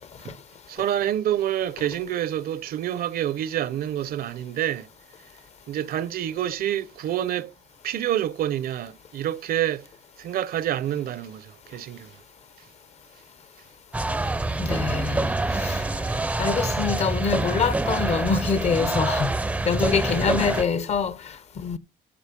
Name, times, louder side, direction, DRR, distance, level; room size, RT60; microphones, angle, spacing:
voice 1, 0.7-4.9 5.7-7.5 7.8-9.9 10.2-12.1, right 11 dB, 55° right, 0.7 m, -27 dB
sound 1, 13.9-20.6, right 2 dB, 5° right, 0.5 m, -26 dB
voice 2, 14.6-15.8 16.4-19.3 19.6-21.8, left 6 dB, 35° left, 0.7 m, -25 dB
13.5 x 5.0 x 5.1 m
cardioid pair, 175°, 19 cm